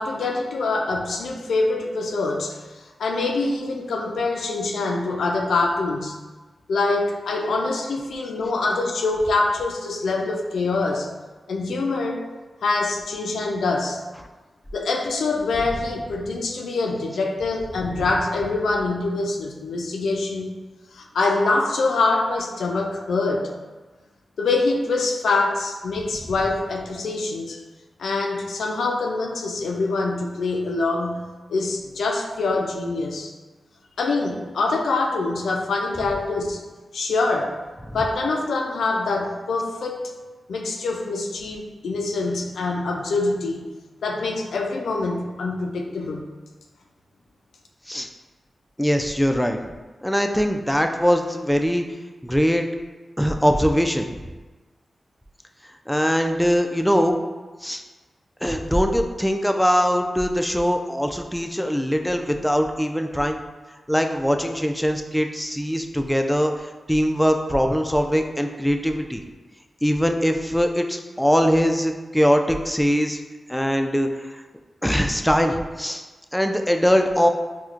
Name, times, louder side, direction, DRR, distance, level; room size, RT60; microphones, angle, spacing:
voice 1, 0.0-6.2 6.7-11.1 11.5-12.3 12.6-14.0 14.7-20.5 20.9-23.5 24.4-27.6 28.0-33.3 34.0-36.6 36.9-37.6 37.9-40.1 40.5-43.7 44.0-46.2, left 3 dB, 85° left, 1 dB, 0.3 m, -25 dB
voice 2, 48.8-49.6 50.0-51.8 52.2-52.7 53.2-54.2 55.9-57.2 57.6-57.8 58.4-63.4 63.9-69.2 69.8-73.2 73.5-74.4 74.8-76.0 76.3-77.3, equal, 5° left, 4 dB, 0.3 m, -21 dB
4.3 x 2.1 x 2.4 m, 1.3 s
cardioid pair, 40°, 0 cm